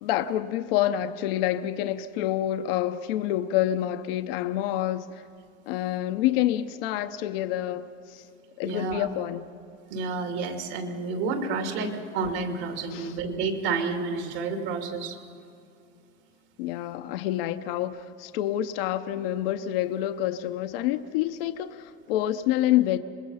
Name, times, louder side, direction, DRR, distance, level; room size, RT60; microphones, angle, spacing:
voice 1, 0.0-5.2 5.7-8.2 8.6-9.4 12.9-13.1 16.6-23.0, left 13 dB, 75° left, 0.8 m, -27 dB
voice 2, 8.6-9.1 9.9-15.2, right 4 dB, 70° right, 2.9 m, -30 dB
25.5 x 21.0 x 5.7 m
supercardioid pair, 135°, 29 cm